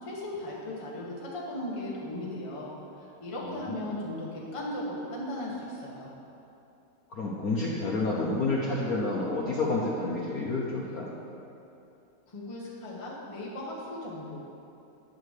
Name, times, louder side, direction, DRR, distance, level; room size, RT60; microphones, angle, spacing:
voice 1, 0.0-2.7 3.2-6.1 12.3-14.4, left 1 dB, 20° left, -4 dB, 0.9 m, -37 dB
voice 2, 3.4-3.8 7.1-11.1, left 2 dB, 60° left, -5 dB, 1.1 m, -29 dB
8.9 x 3.8 x 6.4 m, 2.8 s
omnidirectional pair, 2.2 m